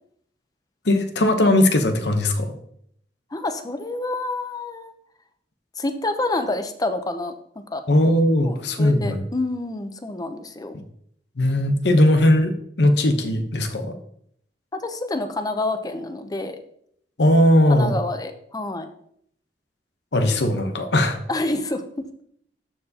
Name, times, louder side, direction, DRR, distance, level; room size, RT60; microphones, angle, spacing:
voice 1, 0.8-2.5 7.9-9.2 10.7-10.8 11.4-13.9 17.2-17.9 20.1-21.2, left 1 dB, 70° left, 7 dB, 0.9 m, -19 dB
voice 2, 3.3-4.9 5.8-7.3 7.7-7.8 8.4-10.8 14.7-16.6 17.7-18.9 21.3-22.1, left 2 dB, 20° left, 8 dB, 0.6 m, -28 dB
13.0 x 4.5 x 2.8 m, 0.68 s
head